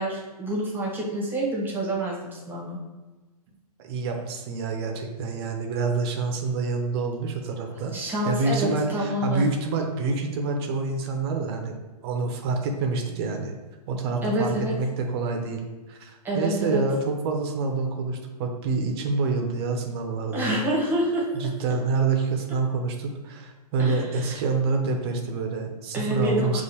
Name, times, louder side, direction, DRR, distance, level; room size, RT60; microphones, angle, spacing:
voice 1, 0.0-2.8 7.9-9.5 14.2-14.7 16.2-16.8 20.3-21.2 21.6-21.7 23.8-24.4 25.9-26.6, right 1 dB, 10° right, -4 dB, 1.0 m, -27 dB
voice 2, 3.8-7.9 8.3-11.7 12.0-13.5 13.9-15.6 15.9-20.6 21.3-26.6, right 4 dB, 40° right, 3 dB, 0.6 m, -27 dB
6.6 x 2.4 x 2.8 m, 1.2 s
hypercardioid pair, 125°, 20 cm